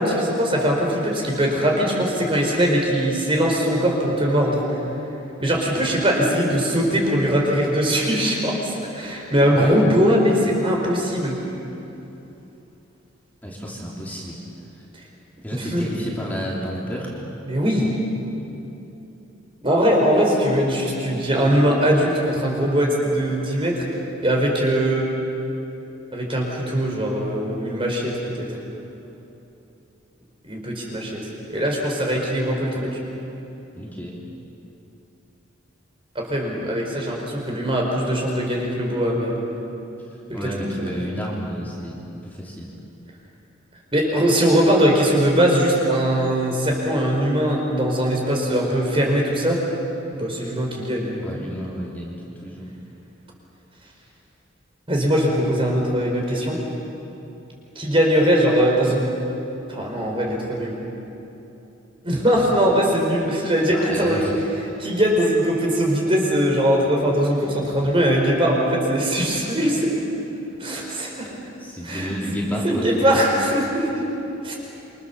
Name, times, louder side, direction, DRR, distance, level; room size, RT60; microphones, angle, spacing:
voice 1, 0.0-4.6 5.4-11.4 15.5-15.8 17.5-18.0 19.6-23.8 24.2-25.1 26.1-28.5 30.4-31.2 31.5-33.0 36.1-39.4 40.3-41.0 43.9-49.6 50.2-51.5 54.9-56.6 57.7-59.1 59.7-60.8 62.0-64.2 64.8-70.0 70.6-71.1 71.8-72.1 72.6-73.9 74.4-74.6, equal, 30° right, -1 dB, 5.0 m, -21 dB
voice 2, 13.4-14.3 15.4-17.1 33.7-34.1 40.3-42.7 51.2-52.7 63.7-64.3 71.6-73.3, equal, 10° left, -5 dB, 3.6 m, -31 dB
28.0 x 25.5 x 7.2 m, 2.9 s
head